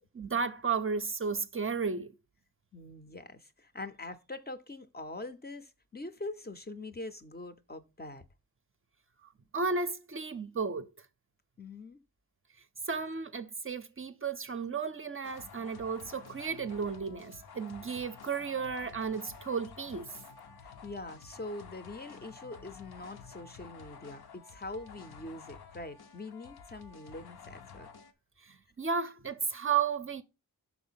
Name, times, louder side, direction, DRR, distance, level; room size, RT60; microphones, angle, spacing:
voice 1, 0.1-2.1 9.5-10.9 12.9-20.1 28.4-30.2, right 5 dB, 35° right, 0.5 m, -33 dB
voice 2, 2.7-8.2 11.6-12.0 20.6-27.9, left 2 dB, 25° left, 0.5 m, -43 dB
sound 1, 15.2-28.1, left 6 dB, 90° left, 0.8 m, -51 dB
5.9 x 4.3 x 5.5 m
wide cardioid pair, 180°, 37 cm